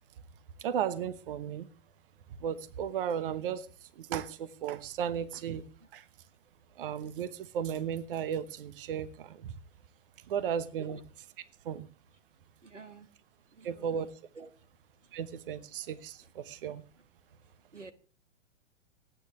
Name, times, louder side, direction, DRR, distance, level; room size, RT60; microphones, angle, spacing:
voice 1, 0.6-1.7 2.4-3.7 4.0-5.6 5.9-6.0 6.8-9.5 10.3-11.0 11.6-11.8 13.6-14.1 15.1-16.8, right 8 dB, 50° right, 15 dB, 1.1 m, -35 dB
voice 2, 12.6-13.1 13.6-13.8 14.4-14.5 17.7-17.9, right 4 dB, 85° right, 11 dB, 1.3 m, -48 dB
27.5 x 9.3 x 3.1 m, 0.35 s
figure-of-eight pair, 110°, 36 cm